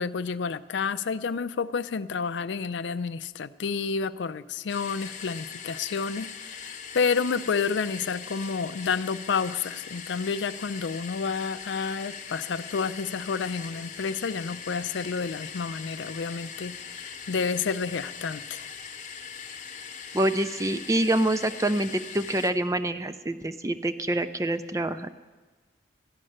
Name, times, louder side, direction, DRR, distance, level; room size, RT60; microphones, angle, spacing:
voice 1, 0.0-18.7, left 5 dB, 85° left, 13 dB, 0.4 m, -30 dB
sound 1, 4.7-22.5, left 6 dB, 40° left, 0.9 m, -41 dB
voice 2, 20.1-25.1, right 1 dB, 15° right, 10 dB, 0.4 m, -26 dB
13.5 x 6.5 x 10.0 m, 1.3 s
head